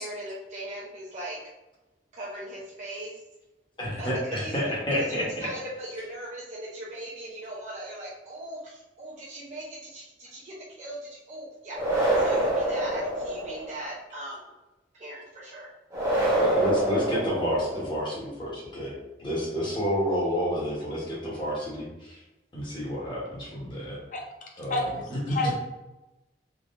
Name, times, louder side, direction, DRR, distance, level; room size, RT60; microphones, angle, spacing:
voice 1, 0.0-1.4 2.1-3.1 4.0-4.5 4.9-14.5 14.9-15.7, right 1 dB, 40° right, -7 dB, 0.6 m, -39 dB
voice 2, 3.8-5.5 16.3-18.9 19.2-22.2 22.5-24.0 24.6-24.8 25.1-25.5, equal, 25° left, -5 dB, 1.1 m, -29 dB
sound 1, 11.7-13.8 15.9-18.0, right 1 dB, 20° right, 1.0 m, -26 dB
voice 3, 24.1-25.5, left 2 dB, 45° left, 0 dB, 0.7 m, -31 dB
3.5 x 2.9 x 2.5 m, 1.0 s
head